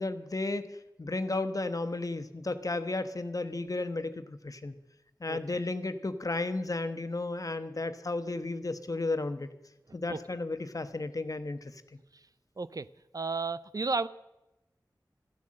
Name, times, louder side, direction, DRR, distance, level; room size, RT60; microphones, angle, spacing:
voice 1, 0.0-4.8 5.2-9.5 9.9-11.8, left 2 dB, 50° left, 10 dB, 1.0 m, -33 dB
voice 2, 12.6-12.9 13.1-14.1, right 3 dB, 55° right, 16 dB, 0.5 m, -32 dB
14.0 x 11.5 x 7.6 m, 0.96 s
wide cardioid pair, 60°, 8 cm